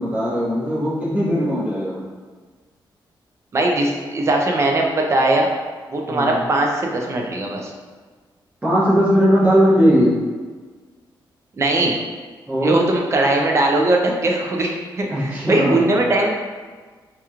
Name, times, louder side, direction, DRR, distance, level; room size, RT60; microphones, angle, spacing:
voice 1, 0.0-2.0 6.1-6.4 8.6-10.1 12.5-12.8 15.1-16.0, equal, 15° right, -10 dB, 1.4 m, -18 dB
voice 2, 3.5-5.5 5.9-7.7 11.6-11.9 12.6-16.3, right 2 dB, 35° right, 0 dB, 0.5 m, -20 dB
4.6 x 2.9 x 2.4 m, 1.4 s
wide cardioid pair, 175°, 8 cm